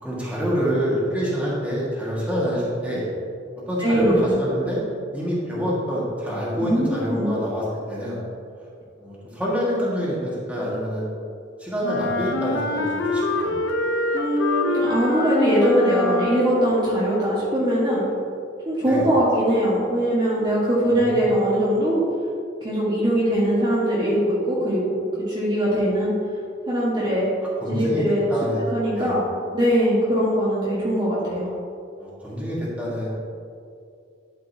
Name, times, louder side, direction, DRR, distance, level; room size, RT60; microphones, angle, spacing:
voice 1, 0.0-3.0 3.7-4.8 5.1-8.2 9.0-11.0 11.6-13.6 18.8-19.1 20.8-21.3 27.6-28.7 28.9-29.1 32.0-33.1, equal, 5° right, -7 dB, 1.8 m, -27 dB
voice 2, 3.8-4.4 6.6-7.3 14.1-18.0 18.6-22.0 22.6-26.1 26.7-27.3 27.7-28.3 28.7-29.2 29.5-31.5, equal, 25° right, -8 dB, 1.5 m, -21 dB
Wind instrument woodwind instrument, 11.8-16.9, left 2 dB, 85° left, 0.7 m, -25 dB
12.0 x 5.2 x 2.8 m, 2.4 s
head